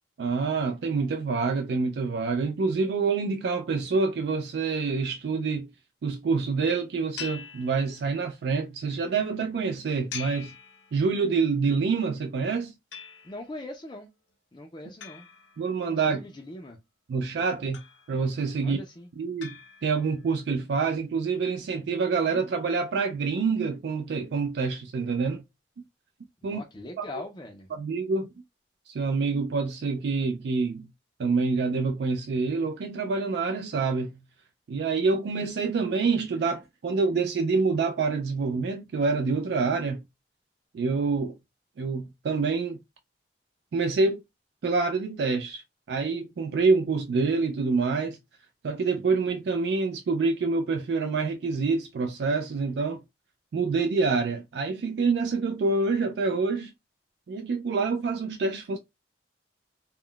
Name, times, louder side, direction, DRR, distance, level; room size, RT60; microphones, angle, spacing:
voice 1, 0.2-5.7 6.0-10.5 10.9-12.7 15.6-16.2 17.1-18.8 19.2-19.6 19.8-25.4 26.4-26.6 27.0-27.1 27.7-28.3 28.9-30.9 31.2-34.1 34.7-40.0 40.7-41.4 41.8-42.8 43.7-44.2 44.6-45.6 45.9-48.2 48.6-53.0 53.5-56.7 57.3-58.8, right 4 dB, 65° right, 0.3 m, -26 dB
sound 1, 7.2-8.4 10.1-11.4 12.9-13.6 15.0-16.2 17.7-18.4 19.4-20.3, left 7 dB, 85° left, 0.6 m, -44 dB
voice 2, 13.2-14.1 14.5-15.3 16.1-16.8 18.6-19.1 26.4-27.7, left 1 dB, 25° left, 0.4 m, -41 dB
2.2 x 2.1 x 3.6 m
head